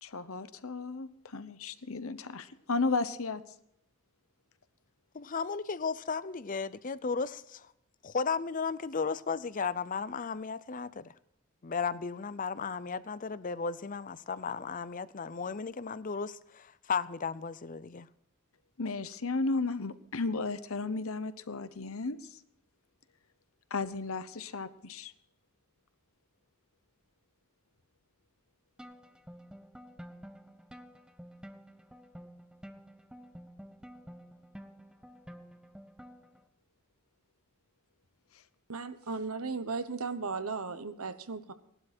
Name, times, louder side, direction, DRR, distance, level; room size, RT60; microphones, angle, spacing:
voice 1, 0.0-3.4 18.8-22.4 23.7-25.1, left 3 dB, 70° left, 1.0 m, -34 dB
voice 2, 5.1-7.6 8.0-11.1 11.6-18.1, left 5 dB, 40° left, 0.6 m, -35 dB
sound 1, 28.8-36.4, equal, 5° right, 0.8 m, -50 dB
voice 3, 38.7-41.5, right 4 dB, 80° right, 1.2 m, -36 dB
18.0 x 12.0 x 4.4 m
head